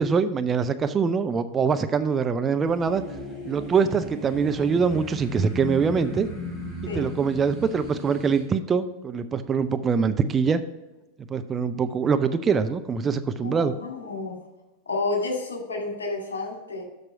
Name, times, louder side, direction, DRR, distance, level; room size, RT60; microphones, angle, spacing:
voice 1, 0.0-3.0 3.5-6.3 6.8-10.6 11.3-13.7, right 5 dB, 20° right, 10 dB, 0.4 m, -24 dB
sound 1, 2.6-8.4, left 1 dB, ahead, 3.2 m, -36 dB
voice 2, 13.4-14.4 14.9-16.8, left 3 dB, 70° left, 0 dB, 2.2 m, -30 dB
7.3 x 6.2 x 5.1 m, 1.0 s
figure-of-eight pair, 90°, 0 cm